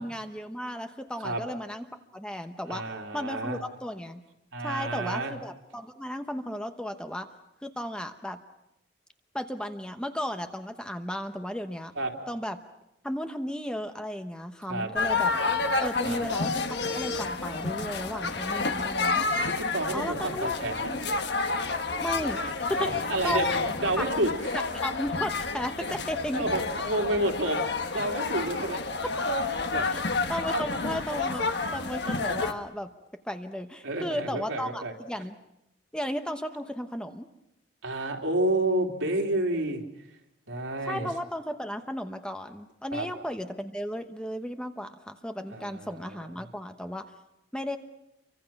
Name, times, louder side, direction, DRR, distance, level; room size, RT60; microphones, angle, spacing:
voice 1, 0.0-1.8 2.1-2.8 3.1-4.2 4.6-7.3 7.6-8.4 9.3-11.9 12.3-12.6 13.0-15.3 15.8-19.2 19.9-20.5 20.9-21.0 22.0-22.9 23.2-23.6 24.0-24.1 24.7-26.4 29.9-30.0 30.3-32.9 33.2-35.4 35.9-37.3 40.8-47.0 47.5-47.8, equal, 5° left, 7 dB, 1.0 m, -34 dB
voice 2, 2.7-3.6 4.5-5.3 12.0-12.1 14.7-14.9 16.0-16.3 18.2-18.8 19.1-19.2 19.5-21.0 22.8-24.3 25.8-25.9 26.3-27.6 27.9-28.8 29.7-29.9 30.5-30.6 33.8-34.9 37.8-39.8 40.5-41.1 42.9-43.1 45.5-46.3, right 1 dB, 80° right, 0 dB, 3.3 m, -30 dB
sound 1, 15.0-32.5, left 3 dB, 55° left, 1.4 m, -29 dB
29.0 x 24.0 x 5.9 m, 0.86 s
head